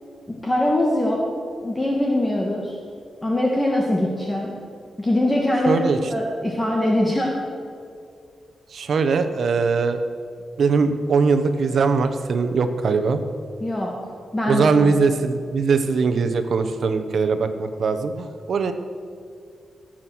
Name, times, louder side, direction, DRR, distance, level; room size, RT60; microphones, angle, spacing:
voice 1, 0.3-1.2 1.6-2.7 3.2-4.5 5.0-5.8 6.1-7.3 13.6-13.9 14.3-14.9, left 1 dB, 15° left, -1 dB, 1.6 m, -22 dB
voice 2, 5.7-6.0 8.7-10.0 10.6-13.2 14.5-18.7, right 4 dB, 65° right, 9 dB, 1.1 m, -21 dB
18.0 x 7.6 x 6.3 m, 2.3 s
wide cardioid pair, 130°, 0 cm